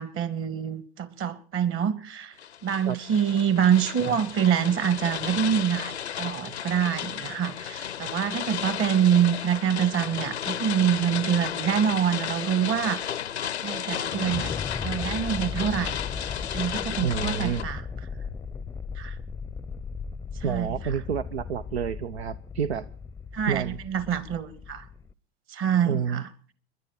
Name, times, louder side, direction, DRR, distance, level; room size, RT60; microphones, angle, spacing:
voice 1, 0.0-2.3 2.6-13.0 13.6-14.5 14.8-15.9 16.5-17.8 19.0-19.1 20.4-20.7 23.3-24.8 25.5-26.2, right 8 dB, 40° right, 13 dB, 2.2 m, -26 dB
sound 1, 2.4-17.6, left 9 dB, 85° left, 0.7 m, -33 dB
sound 2, 14.0-25.1, left 5 dB, 10° left, 0.7 m, -37 dB
voice 2, 17.0-17.6 20.4-22.9 23.5-23.8 25.9-26.2, right 7 dB, 75° right, 13 dB, 0.8 m, -29 dB
30.0 x 11.0 x 4.2 m, 0.44 s
hypercardioid pair, 95°, 32 cm